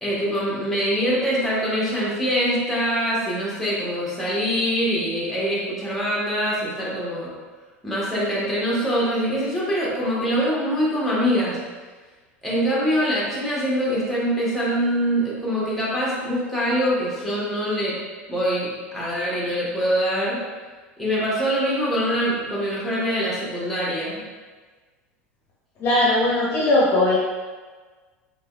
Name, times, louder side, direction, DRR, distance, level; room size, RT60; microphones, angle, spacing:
voice 1, 0.0-7.3 7.8-11.6 12.4-18.0 18.3-20.4 21.0-24.2, equal, ahead, -7 dB, 1.2 m, -24 dB
voice 2, 25.8-27.2, left 2 dB, 35° left, -6 dB, 0.8 m, -19 dB
3.3 x 2.9 x 2.3 m, 1.4 s
hypercardioid pair, 80°, 7 cm